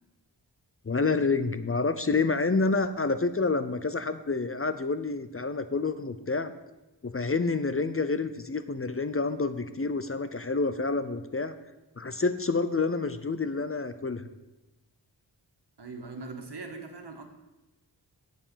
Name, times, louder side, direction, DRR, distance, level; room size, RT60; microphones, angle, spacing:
voice 1, 0.9-6.5 7.0-11.5 12.0-14.3, left 3 dB, 30° left, 11 dB, 0.6 m, -28 dB
voice 2, 15.8-17.2, right 3 dB, 65° right, 3 dB, 1.8 m, -41 dB
8.2 x 7.6 x 6.9 m, 1.0 s
wide cardioid pair, 60°, 43 cm